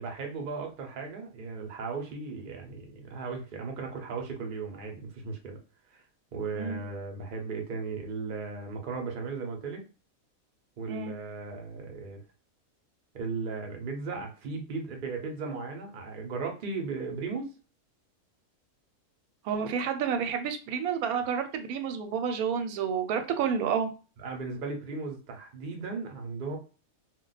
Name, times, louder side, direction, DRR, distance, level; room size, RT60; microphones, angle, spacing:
voice 1, 0.0-5.6 5.9-6.0 6.3-9.9 10.8-12.2 13.1-17.5 24.2-26.6, right 4 dB, 50° right, 2 dB, 0.7 m, -36 dB
voice 2, 19.4-23.9, right 7 dB, 85° right, 6 dB, 1.0 m, -30 dB
2.4 x 2.2 x 3.9 m, 0.35 s
omnidirectional pair, 1.5 m